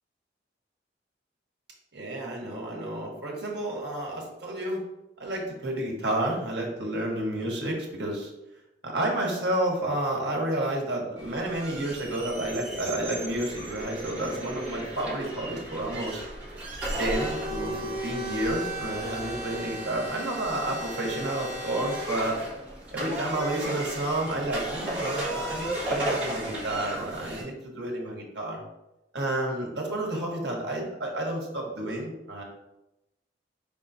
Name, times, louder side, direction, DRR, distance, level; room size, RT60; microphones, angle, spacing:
voice 1, 1.9-4.8 5.2-8.3 8.8-16.2 17.0-22.4 22.9-28.6 29.1-32.4, right 1 dB, 70° right, -1 dB, 1.2 m, -30 dB
sound 1, 11.2-27.4, right 1 dB, 10° right, 1.5 m, -35 dB
5.1 x 3.8 x 2.6 m, 0.91 s
head